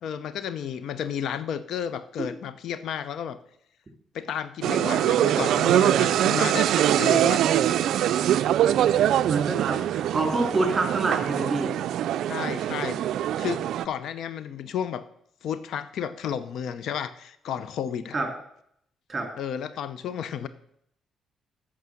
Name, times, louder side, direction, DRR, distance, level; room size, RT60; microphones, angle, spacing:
voice 1, 0.0-3.4 4.1-7.5 12.3-13.0 13.4-15.1 15.4-18.2 19.4-20.5, left 8 dB, 75° left, 14 dB, 0.6 m, -32 dB
sound 1, 4.6-13.9, right 11 dB, 75° right, 0.3 m, -23 dB
voice 2, 9.3-11.7 18.1-18.3 19.1-19.3, right 2 dB, 25° right, 3 dB, 3.4 m, -27 dB
8.3 x 6.2 x 7.6 m, 0.70 s
cardioid pair, 90°, 0 cm